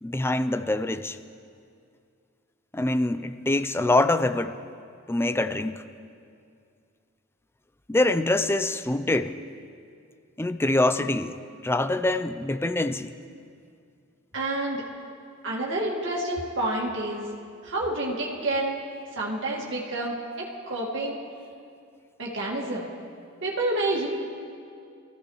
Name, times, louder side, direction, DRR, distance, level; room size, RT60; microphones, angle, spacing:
voice 1, 0.0-1.2 2.7-4.6 5.1-5.8 7.9-9.4 10.4-11.3 11.6-13.1, left 2 dB, 10° left, 10 dB, 0.5 m, -24 dB
voice 2, 14.3-14.8 15.4-17.3 17.6-18.8 19.2-21.2 22.2-22.9 23.4-24.1, right 2 dB, 65° right, -3 dB, 2.0 m, -29 dB
25.5 x 15.0 x 3.2 m, 2.4 s
head